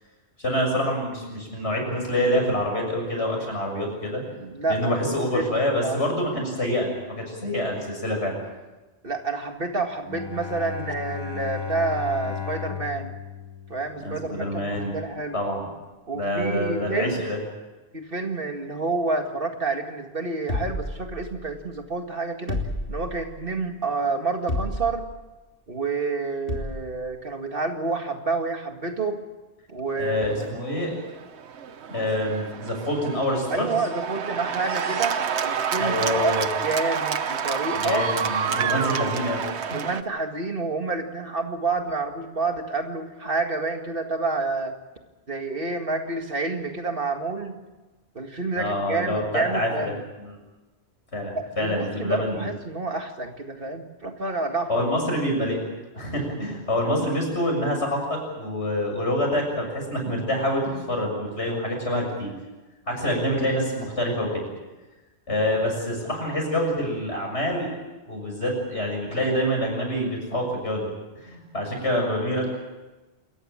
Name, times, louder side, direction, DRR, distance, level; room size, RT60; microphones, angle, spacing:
voice 1, 0.4-4.2 4.7-8.4 14.0-14.9 15.3-15.7 16.1-17.4 30.0-30.9 31.9-33.8 35.8-36.4 37.8-39.5 48.6-49.9 50.2-50.3 51.1-52.5 54.7-55.6 55.9-62.3 62.9-64.4 65.3-67.7 68.0-70.9 71.2-72.5, equal, 70° left, 1 dB, 7.1 m, -26 dB
voice 2, 4.4-5.0 5.3-6.0 9.0-13.1 13.7-15.4 16.1-17.2 17.9-22.6 22.9-25.0 25.7-29.2 29.7-30.5 33.5-36.3 36.6-38.0 39.7-44.8 45.3-47.6 48.2-50.0 51.3-54.9 65.5-65.6, right 3 dB, 50° right, 4 dB, 2.2 m, -29 dB
Bowed string instrument, 10.1-14.4, left 8 dB, 20° left, 1.2 m, -35 dB
sound 1, 20.5-21.6 22.5-23.4 24.5-25.2 26.5-27.0, left 1 dB, 50° left, 3.6 m, -31 dB
Cheering / Applause, 30.3-40.0, right 7 dB, 70° right, 1.2 m, -29 dB
28.0 x 15.0 x 8.8 m, 1.2 s
omnidirectional pair, 1.2 m